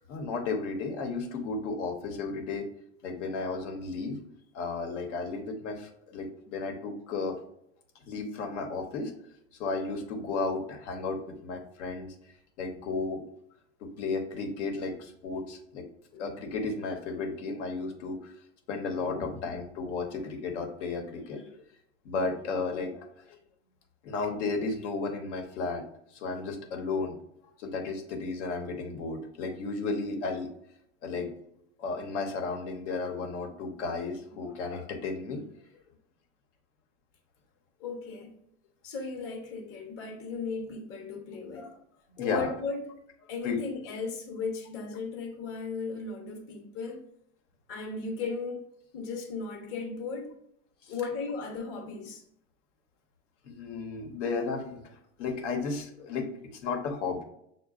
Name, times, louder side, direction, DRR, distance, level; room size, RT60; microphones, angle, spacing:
voice 1, 0.1-2.7 3.0-4.2 4.5-7.4 8.1-9.1 9.6-12.1 12.6-13.2 13.8-15.9 16.2-18.3 18.7-21.6 22.0-23.4 24.0-25.8 26.1-27.2 27.6-30.5 31.0-31.3 31.8-35.4 41.5-41.8 42.2-42.5 43.4-43.6 50.8-50.9 53.4-54.8 55.2-57.2, left 4 dB, 80° left, 4 dB, 1.0 m, -33 dB
voice 2, 19.1-19.4 37.8-38.3 38.8-41.7 42.2-42.8 43.3-47.0 47.7-48.6 48.9-50.3 50.9-52.2, left 4 dB, 40° left, 2 dB, 0.9 m, -36 dB
6.6 x 2.2 x 2.4 m, 0.73 s
supercardioid pair, 120°, 36 cm